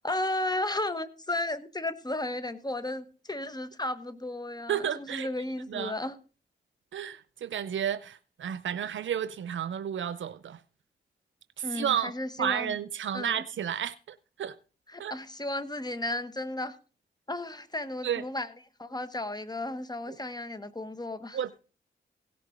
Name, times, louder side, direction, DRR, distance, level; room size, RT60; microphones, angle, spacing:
voice 1, 0.0-6.1 11.6-12.7 13.1-13.4 14.9-16.8 17.3-18.5 18.8-21.4, left 2 dB, 20° left, 1.2 m, -34 dB
voice 2, 4.7-5.3 5.7-5.9 6.9-10.6 11.6-12.1 12.4-14.6 15.0-15.2 18.0-18.2 20.1-20.2 21.3-21.6, right 9 dB, 85° right, 0.5 m, -32 dB
17.0 x 6.8 x 5.1 m
cardioid pair, 60°, 19 cm